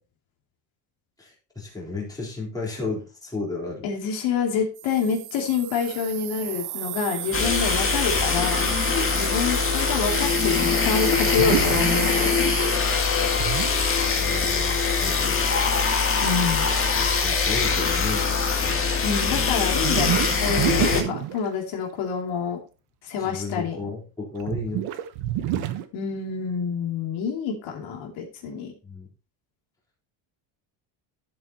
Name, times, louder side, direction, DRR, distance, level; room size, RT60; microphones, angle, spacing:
voice 1, 1.2-3.8 7.3-7.5 14.2-15.5 17.1-18.3 23.2-24.9 28.8-29.1, left 3 dB, 5° left, -4 dB, 3.9 m, -33 dB
voice 2, 3.8-8.6 9.1-12.5 16.2-16.7 19.0-22.6 23.0-23.8 25.9-28.7, left 6 dB, 70° left, 1 dB, 2.8 m, -27 dB
sound 1, 4.8-12.8, right 13 dB, 40° right, 0.5 m, -33 dB
sound 2, 7.3-21.0, left 5 dB, 25° left, 1.9 m, -23 dB
sound 3, 8.3-8.8 9.1-9.2 9.4-9.5 9.8-9.9 11.1-12.0 13.4-13.9 16.1-16.2 16.9-17.1 17.6-18.2 18.7-21.5 23.8-23.9 24.4-25.8, right 13 dB, 75° right, 1.2 m, -29 dB
12.5 x 7.5 x 2.9 m, 0.33 s
cardioid pair, 160°, 49 cm